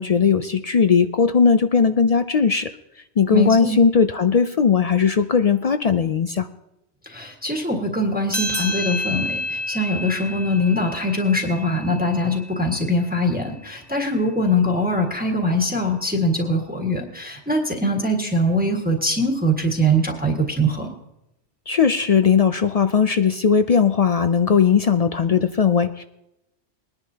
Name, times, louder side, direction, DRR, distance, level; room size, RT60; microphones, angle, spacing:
voice 1, 0.0-2.7 3.2-6.5 21.7-26.0, left 6 dB, 55° left, 10 dB, 0.4 m, -18 dB
voice 2, 3.3-3.8 7.0-20.9, equal, 10° right, 1 dB, 1.5 m, -22 dB
sound 1, 8.3-13.2, left 1 dB, 15° left, 1.1 m, -30 dB
21.5 x 10.5 x 2.8 m, 0.86 s
omnidirectional pair, 1.2 m